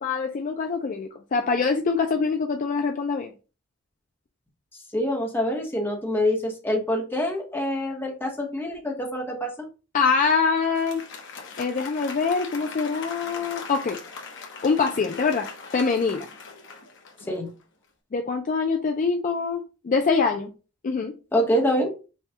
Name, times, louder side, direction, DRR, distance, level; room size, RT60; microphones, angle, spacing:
voice 1, 0.0-3.3 9.9-11.0 11.6-14.0 14.6-16.3 18.1-20.5 20.8-21.1, left 5 dB, 40° left, 4 dB, 0.4 m, -24 dB
voice 2, 4.9-9.7 17.3-17.5 21.3-21.9, equal, 10° left, 1 dB, 0.9 m, -25 dB
Applause, 10.6-17.6, left 4 dB, 60° left, 1.0 m, -40 dB
5.4 x 2.3 x 2.8 m, 0.34 s
head